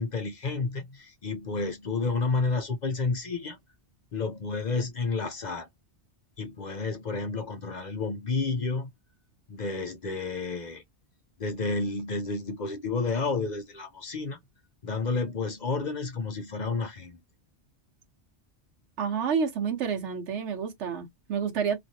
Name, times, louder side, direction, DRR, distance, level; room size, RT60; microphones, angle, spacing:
voice 1, 0.0-3.6 4.1-5.7 6.4-8.9 9.5-10.8 11.4-14.4 14.8-17.2, left 4 dB, 50° left, 0.6 m, -30 dB
voice 2, 19.0-21.8, right 6 dB, 80° right, 1.0 m, -29 dB
3.0 x 2.5 x 2.7 m
omnidirectional pair, 1.2 m